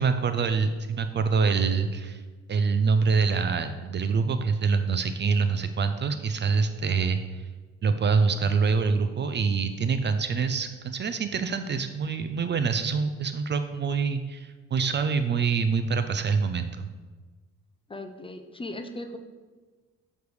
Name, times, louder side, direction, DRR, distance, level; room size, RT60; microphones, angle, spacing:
voice 1, 0.0-2.2 2.5-7.2 7.8-16.9, right 5 dB, 40° right, 9 dB, 0.4 m, -25 dB
voice 2, 17.9-19.2, left 1 dB, 20° left, 7 dB, 0.4 m, -38 dB
6.7 x 3.2 x 4.8 m, 1.3 s
cardioid pair, 90°, 30 cm